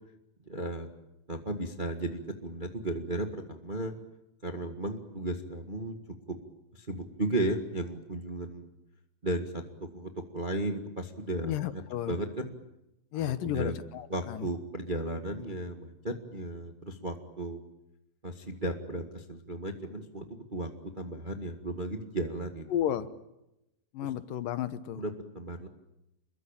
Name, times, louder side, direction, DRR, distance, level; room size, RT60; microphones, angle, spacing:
voice 1, 0.5-0.9 1.3-3.9 4.4-5.9 6.3-6.4 6.7-8.7 9.2-11.8 12.1-12.5 13.1-13.7 14.1-17.6 18.2-20.7 21.0-22.6 24.9-25.7, right 1 dB, 25° right, 5 dB, 1.0 m, -35 dB
voice 2, 11.4-12.1 13.1-14.5 22.7-23.1 23.9-25.0, left 11 dB, 75° left, 13 dB, 2.7 m, -32 dB
27.5 x 22.5 x 8.9 m, 0.89 s
omnidirectional pair, 4.1 m